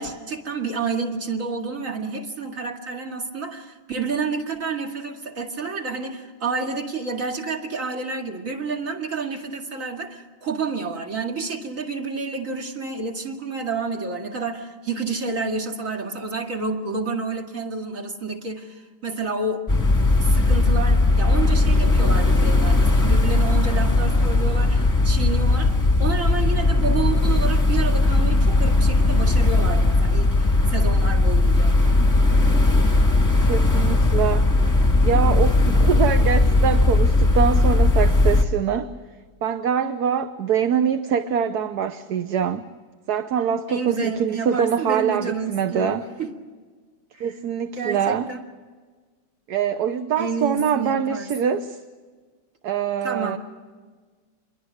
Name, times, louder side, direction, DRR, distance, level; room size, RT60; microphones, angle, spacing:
voice 1, 0.0-19.6 20.2-31.8 43.7-46.3 47.1-47.4 47.8-48.4 50.2-51.3 53.0-53.4, right 4 dB, 40° right, 3 dB, 2.7 m, -29 dB
sound 1, 19.7-38.4, left 2 dB, 10° left, 1.7 m, -18 dB
voice 2, 33.5-34.5 35.0-38.9 39.4-42.6 43.1-46.0 47.2-48.3 49.5-51.8 52.6-53.4, right 8 dB, 60° right, 9 dB, 1.4 m, -24 dB
27.5 x 22.0 x 6.5 m, 1.5 s
omnidirectional pair, 2.1 m